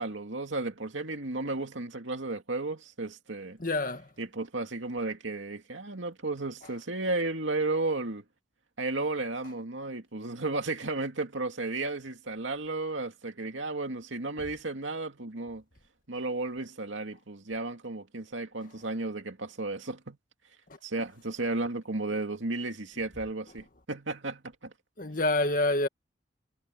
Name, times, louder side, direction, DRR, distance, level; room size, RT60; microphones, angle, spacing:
voice 1, 0.0-3.6 4.2-8.2 8.8-15.6 16.1-20.2 20.8-24.7, right 2 dB, 90° right, 2.4 m, -33 dB
voice 2, 3.6-4.1 25.0-25.9, left 2 dB, 45° left, 1.9 m, -27 dB
head